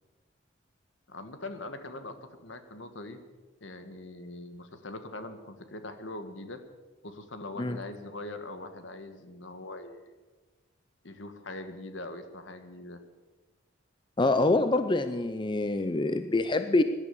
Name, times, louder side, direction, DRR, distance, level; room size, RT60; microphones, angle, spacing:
voice 1, 1.1-3.2 3.6-6.6 7.0-10.1 11.0-13.0, left 2 dB, 70° left, 8 dB, 1.6 m, -42 dB
voice 2, 14.2-16.8, left 2 dB, 25° left, 10 dB, 0.5 m, -25 dB
17.5 x 11.5 x 7.0 m, 1.3 s
head